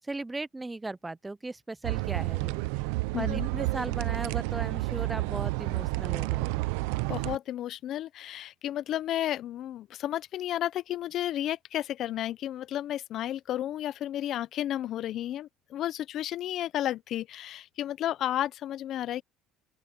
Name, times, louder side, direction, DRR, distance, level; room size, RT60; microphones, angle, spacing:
voice 1, 0.0-2.6 3.1-6.6, right 2 dB, 10° right, 0.5 m, -37 dB
sound 1, 1.8-7.4, right 23 dB, 85° right, 0.5 m, -30 dB
voice 2, 3.1-3.5 7.1-19.2, left 12 dB, 55° left, 0.6 m, -32 dB
open air
cardioid pair, 115°, 0 cm